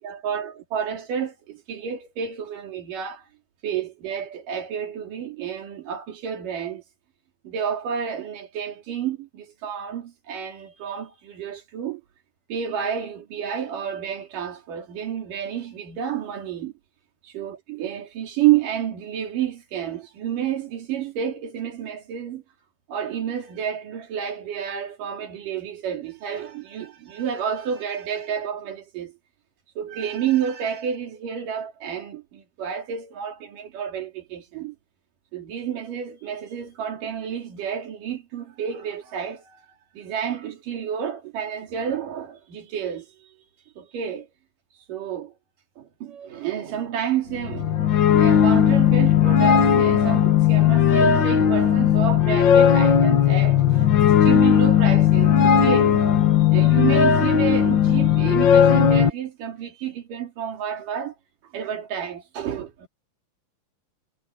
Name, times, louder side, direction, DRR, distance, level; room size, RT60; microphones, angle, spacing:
voice 1, 0.0-3.2 3.6-6.8 7.4-12.0 12.5-16.7 17.2-22.4 22.9-29.1 29.8-34.8 35.3-39.6 40.0-43.3 43.8-44.3 44.9-45.3 45.8-47.7 48.1-61.1 61.5-62.9, right 9 dB, 80° right, 4.1 m, -30 dB
sound 1, 47.3-59.1, left 8 dB, 50° left, 1.5 m, -17 dB
omnidirectional pair, 3.7 m